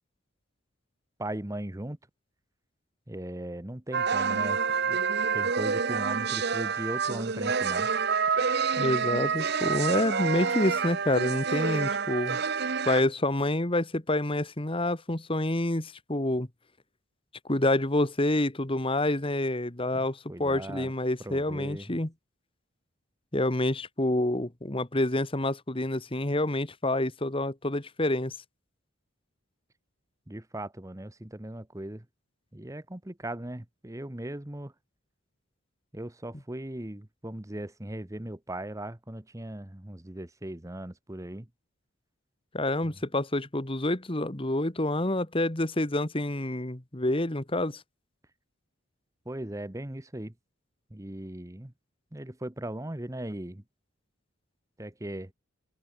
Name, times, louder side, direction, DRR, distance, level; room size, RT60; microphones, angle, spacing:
voice 1, 1.2-2.0 3.1-5.0 5.3-7.9 19.9-20.0 20.3-20.9 21.2-22.0 30.3-32.0 32.5-34.7 35.9-41.5 42.8-42.9 49.3-50.3 50.9-51.7 52.1-53.6 54.8-55.3, right 1 dB, 15° right, 1.0 m, -38 dB
sound 1, 3.9-13.0, right 5 dB, 55° right, 0.9 m, -28 dB
voice 2, 8.8-12.4 12.8-16.5 17.5-22.1 23.3-28.3 42.5-47.8, left 1 dB, 25° left, 1.5 m, -28 dB
head